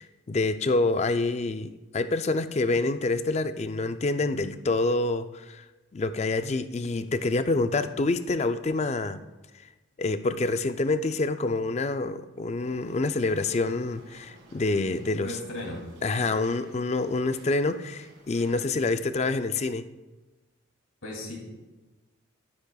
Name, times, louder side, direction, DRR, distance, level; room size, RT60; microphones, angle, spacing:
voice 1, 0.0-5.6 5.9-9.2 10.0-15.4 16.0-19.9, left 3 dB, 30° left, 10 dB, 0.4 m, -27 dB
sound 1, 12.6-18.7, right 1 dB, 60° right, 1.9 m, -54 dB
voice 2, 15.1-15.8 21.0-21.4, left 1 dB, 80° left, -1 dB, 2.7 m, -36 dB
12.0 x 9.6 x 2.3 m, 1.1 s
head